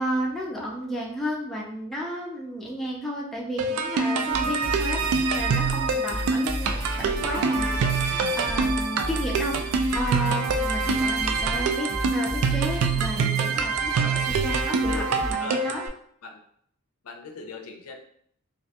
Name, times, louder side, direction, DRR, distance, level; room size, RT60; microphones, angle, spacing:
voice 1, 0.0-15.8, equal, ahead, -4 dB, 0.3 m, -32 dB
sound 1, 3.6-15.9, right 4 dB, 90° right, 0.3 m, -25 dB
sound 2, 4.3-15.3, equal, 65° right, 0.8 m, -33 dB
voice 2, 14.9-15.7 16.2-16.4 17.0-18.0, left 4 dB, 80° left, 3 dB, 0.4 m, -39 dB
2.3 x 2.1 x 2.7 m, 0.66 s
head